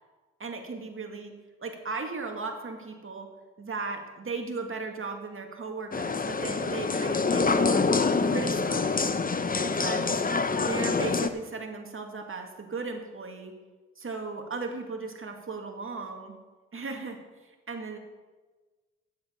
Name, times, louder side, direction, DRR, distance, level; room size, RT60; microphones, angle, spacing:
voice 1, 0.4-3.3 3.6-7.9 8.2-9.1 9.6-10.2 10.6-13.5 14.0-16.3 16.7-18.0, right 4 dB, 40° right, 4 dB, 2.2 m, -37 dB
sound 1, 5.9-11.3, left 4 dB, 25° left, 0.9 m, -26 dB
10.0 x 7.9 x 7.0 m, 1.3 s
supercardioid pair, 45°, 32 cm